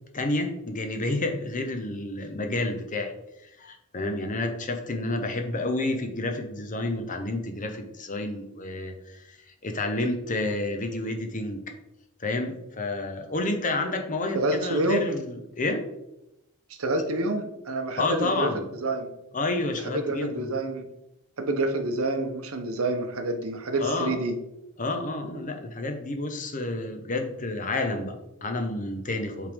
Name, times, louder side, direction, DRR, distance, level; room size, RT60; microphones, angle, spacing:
voice 1, 0.1-3.1 3.4-11.6 12.2-15.8 18.0-18.7 19.3-20.5 23.8-24.2 24.8-29.5, left 2 dB, 35° left, 5 dB, 0.8 m, -30 dB
voice 2, 14.3-15.1 16.8-18.5 18.8-19.1 19.8-20.8 21.4-24.4, right 2 dB, 65° right, 5 dB, 0.8 m, -27 dB
7.8 x 3.4 x 3.5 m, 0.86 s
head